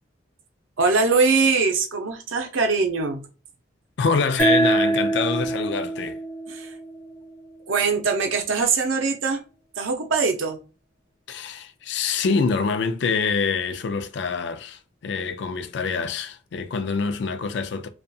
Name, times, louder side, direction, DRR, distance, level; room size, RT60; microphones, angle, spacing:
voice 1, 0.8-3.3 6.5-6.7 7.7-9.4 9.8-10.6, right 4 dB, 80° right, 0.6 m, -22 dB
voice 2, 4.0-6.2 11.3-17.9, left 5 dB, 60° left, 0.3 m, -25 dB
sound 1, 4.4-7.6, right 2 dB, 15° left, 1.0 m, -24 dB
2.6 x 2.4 x 2.3 m
head